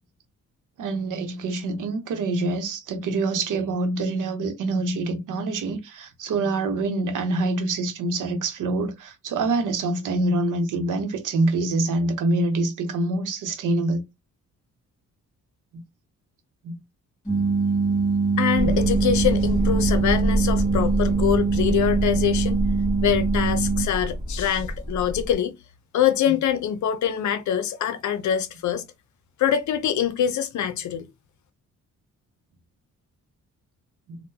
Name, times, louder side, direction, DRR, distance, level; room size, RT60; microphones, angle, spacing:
voice 1, 0.8-14.0 15.7-15.8 16.6-16.7 17.9-18.0 18.6-18.7 34.1-34.2, right 2 dB, 85° right, 0.9 m, -25 dB
sound 1, 17.3-23.8, right 4 dB, 5° left, 1.1 m, -23 dB
voice 2, 18.4-22.6 23.0-25.5 25.9-28.8 29.4-31.1, left 10 dB, 70° left, 0.6 m, -24 dB
sound 2, 18.6-25.3, equal, 15° right, 0.7 m, -27 dB
3.7 x 2.2 x 2.7 m
wide cardioid pair, 170°, 31 cm